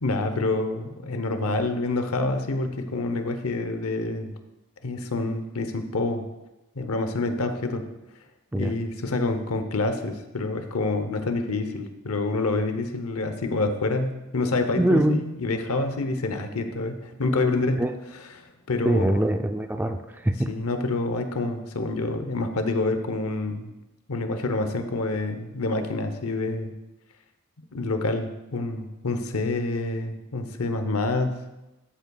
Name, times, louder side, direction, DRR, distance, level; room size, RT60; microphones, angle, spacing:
voice 1, 0.0-4.3 4.8-6.2 6.8-7.8 8.5-17.8 18.4-19.3 20.5-23.7 24.1-26.7 27.7-31.4, left 2 dB, 70° left, 7 dB, 0.8 m, -27 dB
voice 2, 14.8-15.2 17.8-17.9 18.8-20.5, right 1 dB, 10° right, 6 dB, 0.4 m, -23 dB
13.0 x 8.0 x 2.3 m, 1.0 s
head